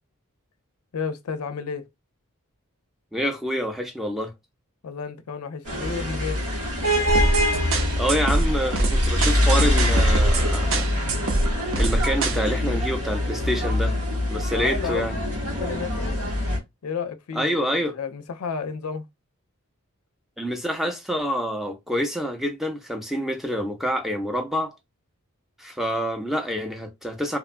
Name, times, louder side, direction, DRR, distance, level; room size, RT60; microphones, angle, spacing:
voice 1, 0.9-1.8 4.8-6.4 14.5-15.1 15.4-16.2 16.8-19.1, left 5 dB, 80° left, 0.4 m, -32 dB
voice 2, 3.1-4.3 8.0-10.9 11.8-13.9 14.3-15.2 17.3-18.0 20.4-24.7 25.6-27.4, equal, ahead, 0.5 m, -27 dB
sound 1, 5.6-16.6, left 1 dB, 90° right, 1.6 m, -24 dB
sound 2, 7.1-12.4, right 1 dB, 60° right, 0.6 m, -24 dB
2.9 x 2.2 x 2.4 m
head